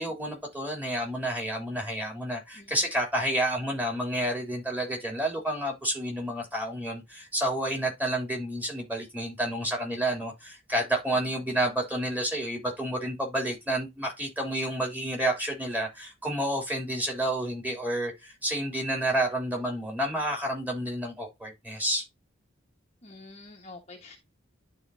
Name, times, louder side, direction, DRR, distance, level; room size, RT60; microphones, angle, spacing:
voice 1, 0.0-22.1, right 1 dB, 10° right, 3.1 m, -30 dB
voice 2, 23.0-24.2, left 2 dB, 35° left, 1.3 m, -47 dB
11.5 x 4.3 x 2.7 m
head